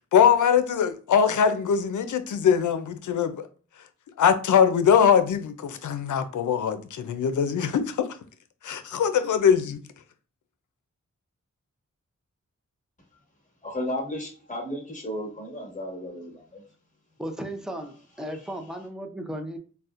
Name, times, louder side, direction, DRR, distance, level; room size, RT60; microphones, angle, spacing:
voice 1, 0.1-3.4 4.2-8.1 8.6-9.8, left 7 dB, 85° left, 0.5 m, -22 dB
voice 2, 13.6-16.6, left 1 dB, 25° left, 1.4 m, -34 dB
voice 3, 17.2-19.6, right 1 dB, ahead, 0.6 m, -35 dB
4.0 x 2.1 x 2.4 m
wide cardioid pair, 75°, 30 cm